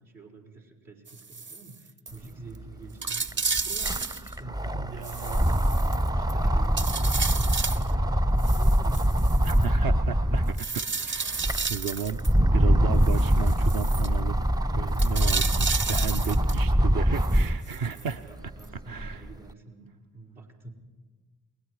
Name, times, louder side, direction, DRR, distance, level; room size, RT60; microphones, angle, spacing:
voice 1, 0.0-4.6 5.4-9.2 17.9-20.7, right 2 dB, 75° right, -3 dB, 4.9 m, -46 dB
sound 1, 1.1-1.8 2.1-2.2 2.6-2.7 3.0-4.3 5.0-6.3 6.8-7.9 8.4-9.7 10.6-12.3 13.0-14.1 15.0-16.6 17.2-18.1 18.6-18.7, right 5 dB, 25° right, 0.9 m, -32 dB
sound 2, 2.5-2.6 2.9-10.7 11.2-17.7 18.2-19.3, equal, 10° right, 0.5 m, -24 dB
voice 2, 4.4-5.5 9.4-12.2 12.5-14.4 14.7-18.2 18.9-19.3, right 7 dB, 50° right, 9 dB, 0.9 m, -34 dB
29.0 x 21.0 x 4.9 m, 1.4 s
hypercardioid pair, 45°, 43 cm